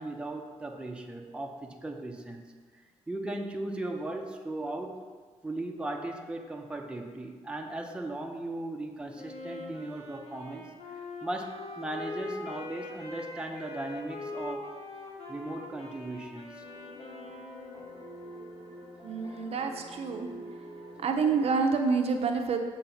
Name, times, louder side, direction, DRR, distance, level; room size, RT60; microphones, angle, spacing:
voice 1, 0.0-2.4 3.1-5.0 5.4-10.6 11.2-14.7 15.3-16.6, right 2 dB, 10° right, 2 dB, 0.7 m, -37 dB
Wind instrument woodwind instrument, 9.1-18.0, left 3 dB, 55° left, 1.6 m, -42 dB
sound 1, 16.6-21.7, equal, 40° left, 1.7 m, -46 dB
voice 2, 19.0-20.3 21.0-22.6, right 5 dB, 55° right, 4 dB, 0.6 m, -27 dB
7.6 x 3.9 x 5.7 m, 1.5 s
cardioid pair, 105°, 12 cm